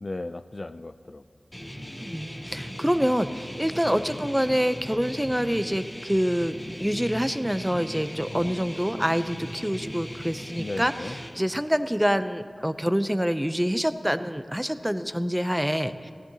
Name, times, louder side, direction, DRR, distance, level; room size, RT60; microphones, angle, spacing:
voice 1, 0.0-1.2 3.9-4.2 8.3-8.7 10.6-11.2, left 2 dB, 45° left, 11 dB, 0.3 m, -36 dB
sound 1, 1.5-11.3, equal, 25° left, 2.5 m, -38 dB
voice 2, 2.0-16.1, equal, 5° right, 11 dB, 0.5 m, -26 dB
17.0 x 17.0 x 2.8 m, 2.1 s
wide cardioid pair, 60°, 0 cm